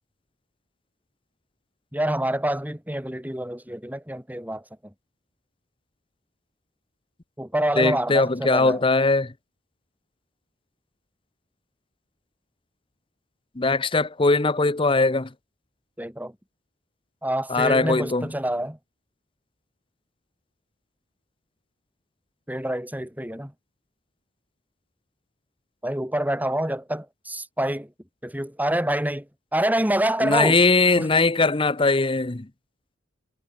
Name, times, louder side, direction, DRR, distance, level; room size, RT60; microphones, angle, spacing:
voice 1, 1.9-4.6 7.4-8.8 16.0-16.3 17.2-18.8 22.5-23.5 25.8-27.9 28.2-29.3 29.5-30.6 31.0-31.1, right 1 dB, 10° right, 4.2 m, -26 dB
voice 2, 7.8-9.3 13.6-15.3 17.5-18.3 30.2-32.5, left 3 dB, 25° left, 0.8 m, -20 dB
head